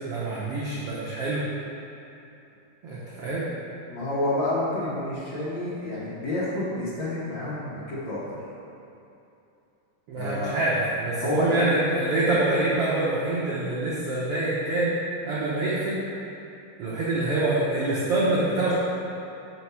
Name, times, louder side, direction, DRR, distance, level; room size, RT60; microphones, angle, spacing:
voice 1, 0.1-1.4 2.8-3.4 10.1-15.0 15.3-16.0 16.8-18.7, right 2 dB, 80° right, -8 dB, 1.3 m, -25 dB
voice 2, 3.9-8.4 10.2-10.6 11.2-11.7, left 1 dB, 85° left, -9 dB, 1.0 m, -29 dB
5.2 x 4.6 x 5.6 m, 2.8 s
omnidirectional pair, 3.9 m